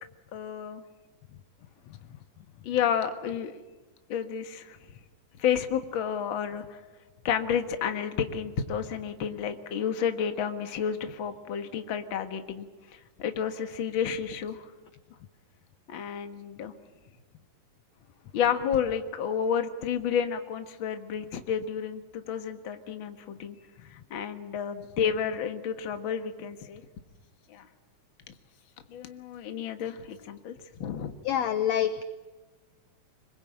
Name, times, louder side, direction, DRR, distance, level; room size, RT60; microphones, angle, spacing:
voice 1, 0.3-0.8 2.6-3.6 4.1-4.8 5.4-6.8 7.2-14.7 15.9-16.7 18.3-23.6 23.8-26.8 27.5-27.7 28.3-28.4 28.9-31.1, left 8 dB, 50° left, 7 dB, 1.7 m, -31 dB
voice 2, 31.3-32.0, left 10 dB, 70° left, 10 dB, 1.7 m, -26 dB
25.5 x 21.5 x 8.9 m, 1.2 s
omnidirectional pair, 4.0 m